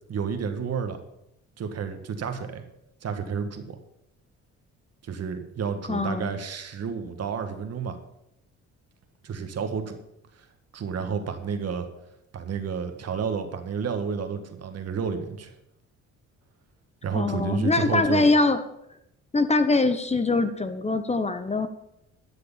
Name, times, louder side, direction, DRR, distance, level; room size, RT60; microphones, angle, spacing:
voice 1, 0.1-1.0 1.6-2.6 3.0-3.8 5.0-8.0 9.2-10.0 10.7-11.9 12.3-15.5 17.0-18.3, right 6 dB, 55° right, 7 dB, 1.7 m, -30 dB
voice 2, 5.9-6.3 17.1-18.6 19.3-21.7, left 3 dB, 20° left, 10 dB, 1.0 m, -23 dB
12.5 x 6.7 x 7.2 m, 0.81 s
cardioid pair, 90°, 30 cm